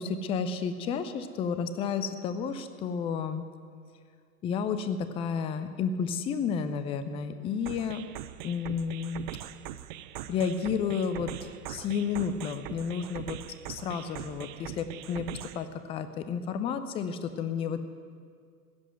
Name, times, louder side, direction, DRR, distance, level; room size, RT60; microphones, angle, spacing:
voice 1, 0.0-3.5 4.4-8.0 8.4-9.2 10.3-11.3 11.7-13.4 13.7-15.3 15.5-17.8, left 6 dB, 15° left, 11 dB, 0.5 m, -31 dB
sound 1, 7.7-15.7, right 12 dB, 35° right, 0.6 m, -42 dB
15.5 x 7.9 x 9.3 m, 2.1 s
figure-of-eight pair, 100°, 45 cm